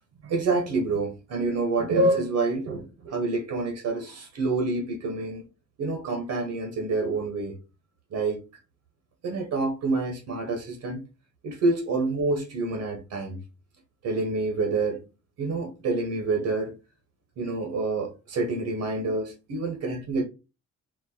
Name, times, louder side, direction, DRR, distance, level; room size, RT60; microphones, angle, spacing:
voice 1, 0.2-5.4 5.8-7.6 8.1-8.4 9.2-11.0 11.4-13.4 14.0-15.0 15.4-16.7 17.4-20.2, right 3 dB, 75° right, 1.4 m, -27 dB
4.5 x 2.1 x 4.3 m
cardioid pair, 90°, 30 cm